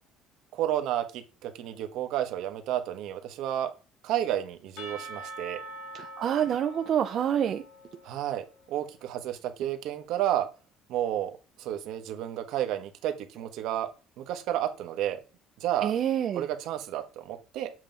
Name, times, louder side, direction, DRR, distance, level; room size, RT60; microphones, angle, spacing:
voice 1, 0.5-3.7 4.0-5.6 8.0-10.5 10.9-13.9 14.2-15.2 15.6-15.9 16.3-17.7, right 12 dB, 70° right, 7 dB, 1.0 m, -31 dB
Percussion / Church bell, 4.8-8.6, right 1 dB, 70° left, 2.8 m, -44 dB
voice 2, 5.9-7.6 15.8-16.4, right 9 dB, 45° right, 6 dB, 0.4 m, -27 dB
7.5 x 2.9 x 5.1 m, 0.32 s
cardioid pair, 145°, 0 cm